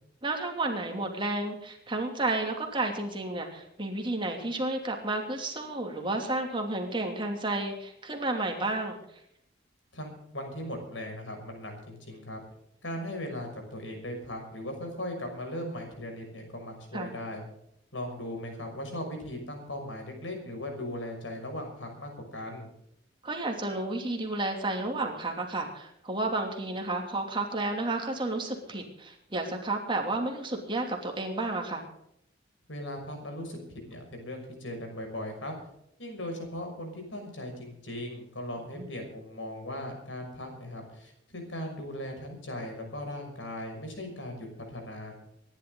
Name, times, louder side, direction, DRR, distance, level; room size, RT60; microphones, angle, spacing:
voice 1, 0.2-9.0 16.9-17.1 23.2-31.8 38.6-38.9, right 2 dB, 25° right, 2 dB, 2.8 m, -31 dB
voice 2, 9.9-12.4 12.8-17.4 17.9-22.7 32.7-33.6 33.9-35.5 36.0-45.1, left 1 dB, 85° left, 3 dB, 6.1 m, -38 dB
24.5 x 11.5 x 3.9 m, 0.75 s
head